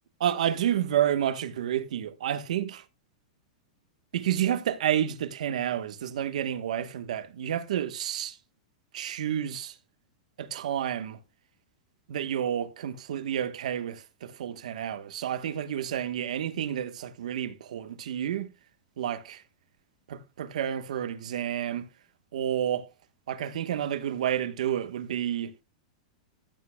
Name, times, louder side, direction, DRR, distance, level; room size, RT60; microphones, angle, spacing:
voice 1, 0.2-2.8 4.1-8.4 8.9-9.7 10.4-11.2 12.1-18.5 19.0-19.4 20.1-21.9 22.3-22.9 23.3-25.5, right 10 dB, 80° right, 1.2 m, -30 dB
15.0 x 8.4 x 2.2 m
supercardioid pair, 150°, 4 cm